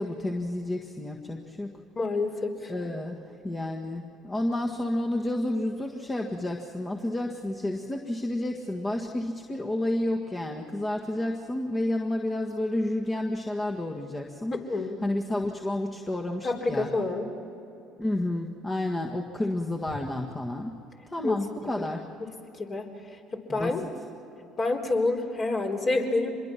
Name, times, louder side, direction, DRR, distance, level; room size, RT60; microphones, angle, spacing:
voice 1, 0.0-1.8 2.7-14.5 15.0-16.9 18.0-20.8 21.1-22.1 23.5-23.8, left 1 dB, 20° left, 1 dB, 1.7 m, -30 dB
voice 2, 2.0-2.7 14.5-15.0 16.4-17.3 21.2-21.4 21.8-21.9 22.2-22.9 23.3-23.8 24.6-26.3, left 3 dB, 40° left, 2 dB, 3.8 m, -28 dB
25.5 x 22.0 x 6.0 m, 2.8 s
hypercardioid pair, 70°, 0 cm